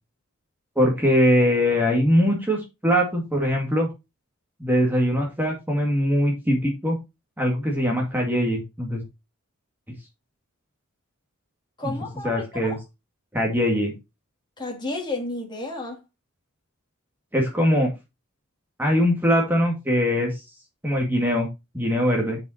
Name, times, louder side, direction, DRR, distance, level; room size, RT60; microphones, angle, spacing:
voice 1, 0.8-3.9 4.6-7.0 7.4-9.0 11.8-11.9 12.2-12.8 13.3-13.9 17.3-17.9 18.8-20.3 20.8-21.5 21.7-22.4, equal, 10° right, 2.2 m, -22 dB
voice 2, 11.8-12.8 14.6-16.0, left 2 dB, 20° left, 2.6 m, -32 dB
7.2 x 5.7 x 4.3 m
head